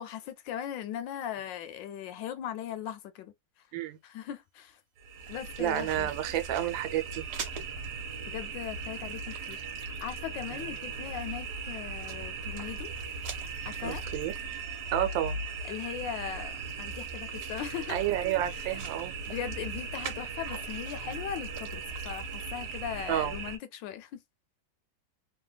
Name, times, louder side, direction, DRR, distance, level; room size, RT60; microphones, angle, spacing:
voice 1, 0.0-3.3 4.0-4.8 5.3-6.1 8.3-12.9 13.6-14.0 15.6-18.0 18.3-18.8 19.2-24.2, left 10 dB, 80° left, 1.3 m, -39 dB
sound 1, 5.0-23.6, right 4 dB, 65° right, 1.3 m, -38 dB
voice 2, 5.6-7.3 10.5-10.6 13.8-14.3 14.9-15.4 17.9-19.1 23.1-23.3, right 12 dB, 90° right, 1.4 m, -30 dB
3.3 x 2.2 x 2.2 m
omnidirectional pair, 2.0 m